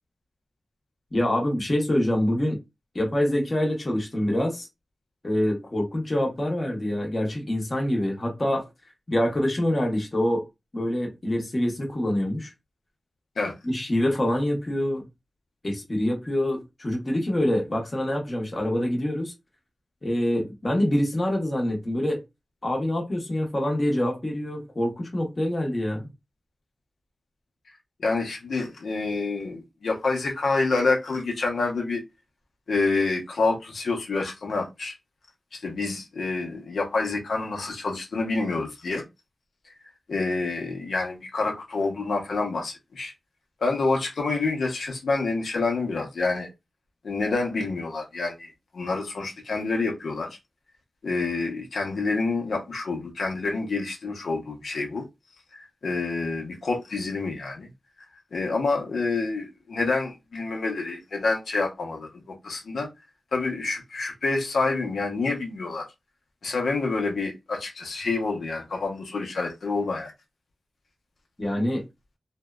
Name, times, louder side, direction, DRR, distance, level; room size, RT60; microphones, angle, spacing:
voice 1, 1.1-2.6 2.9-4.7 5.2-8.7 9.1-10.5 10.7-12.5 13.6-15.1 15.6-19.3 20.0-22.2 22.6-26.1 71.4-71.8, left 1 dB, 30° left, 0.8 m, -25 dB
voice 2, 28.0-32.0 32.7-34.9 35.5-39.0 40.1-43.1 43.6-46.5 47.0-50.3 51.0-55.0 55.5-57.7 58.3-62.9 63.3-65.8 66.4-70.1, left 3 dB, 75° left, 0.6 m, -27 dB
2.7 x 2.1 x 2.3 m
wide cardioid pair, 120°, 0 cm